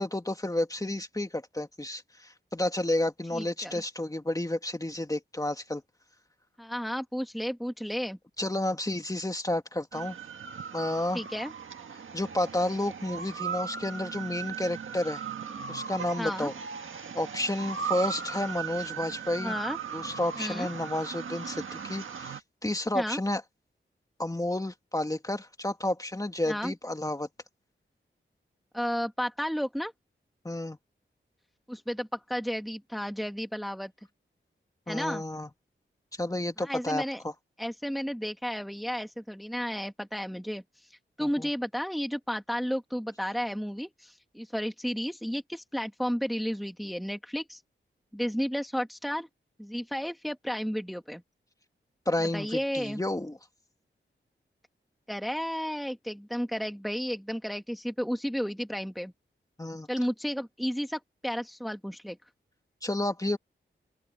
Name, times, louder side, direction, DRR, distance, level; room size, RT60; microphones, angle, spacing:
voice 1, 0.0-5.8 8.4-10.2 10.7-11.2 12.1-15.2 15.7-16.5 17.1-19.6 19.9-23.4 24.2-27.3 30.4-30.8 34.9-35.5 36.2-37.3 41.2-41.5 52.1-53.4 59.6-59.9 62.8-63.4, left 1 dB, 15° left, 1.9 m, -31 dB
voice 2, 3.3-3.8 6.6-8.2 11.1-11.5 16.2-16.5 19.4-19.8 20.3-20.7 22.9-23.2 26.5-26.7 28.7-29.9 31.7-33.9 34.9-35.2 36.6-37.2 37.6-47.6 48.1-49.3 49.6-51.2 52.3-53.0 55.1-59.1 59.9-62.2, equal, ahead, 1.6 m, -33 dB
sound 1, 9.9-22.4, right 6 dB, 85° right, 1.6 m, -38 dB
open air
wide cardioid pair, 85°, 20 cm